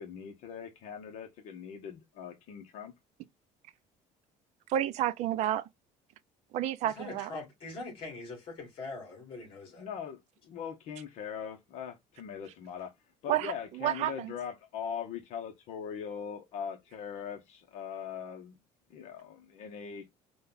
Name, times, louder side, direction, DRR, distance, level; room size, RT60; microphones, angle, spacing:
voice 1, 0.0-2.9 9.8-10.2 10.4-12.9 13.2-18.5 18.9-20.1, left 7 dB, 55° left, 0.9 m, -41 dB
voice 2, 4.7-5.7 6.5-7.3 13.3-14.3, right 12 dB, 55° right, 0.5 m, -30 dB
voice 3, 6.8-9.9, left 3 dB, 40° left, 2.6 m, -42 dB
5.2 x 2.3 x 3.9 m
cardioid pair, 165°, 14 cm